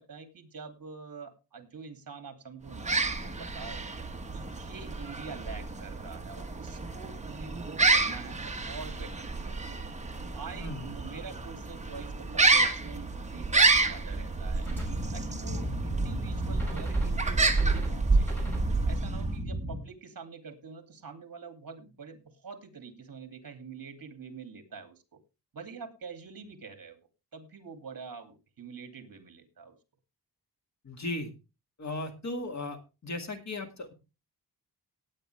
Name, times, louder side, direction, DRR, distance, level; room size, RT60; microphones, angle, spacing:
voice 1, 0.0-3.8 4.3-9.6 10.3-14.7 15.1-18.3 18.9-25.2 25.5-27.0 27.3-29.7, right 5 dB, 55° right, 8 dB, 2.5 m, -46 dB
sound 1, 2.7-19.4, right 3 dB, 15° right, 1.3 m, -29 dB
voice 2, 10.6-10.9 30.8-31.3 31.8-33.9, left 2 dB, 45° left, 5 dB, 2.1 m, -36 dB
sound 2, 14.6-19.8, equal, 5° left, 5.5 m, -36 dB
18.0 x 8.8 x 3.3 m, 0.29 s
wide cardioid pair, 165°, 40 cm